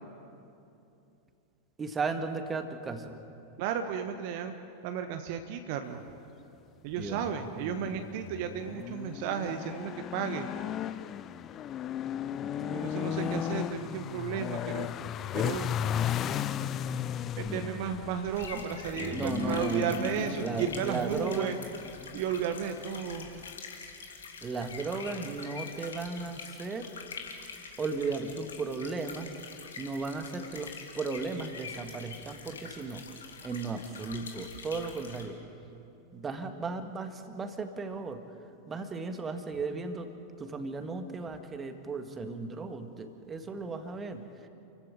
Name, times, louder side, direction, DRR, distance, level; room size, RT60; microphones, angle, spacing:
voice 1, 1.8-3.2 6.9-7.3 7.6-8.0 12.4-13.4 17.4-17.7 18.5-18.6 19.1-21.5 24.4-26.9 27.8-29.4 29.8-33.1 33.4-35.4 36.1-38.2 38.7-40.1 40.4-44.5, right 4 dB, 20° right, 7 dB, 1.9 m, -36 dB
voice 2, 3.6-4.5 4.8-6.0 6.8-10.5 12.7-14.9 15.3-15.7 17.4-21.6 22.1-23.3, right 8 dB, 45° right, 7 dB, 1.3 m, -33 dB
sound 1, 6.9-23.5, left 10 dB, 30° left, 0.7 m, -36 dB
sound 2, 18.3-35.2, left 5 dB, 70° left, 3.1 m, -45 dB
29.5 x 15.5 x 8.8 m, 2.8 s
figure-of-eight pair, 90°, 0 cm